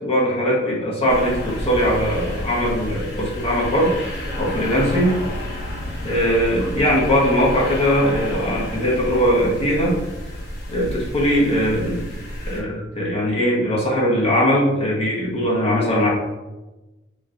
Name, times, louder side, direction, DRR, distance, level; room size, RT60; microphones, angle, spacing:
voice 1, 0.0-3.9 4.4-5.1 6.0-10.0 10.7-12.1 12.4-16.1, equal, 30° left, -5 dB, 1.2 m, -20 dB
sound 1, 1.1-12.6, equal, 55° left, 1.0 m, -30 dB
5.2 x 3.1 x 2.6 m, 1.1 s
head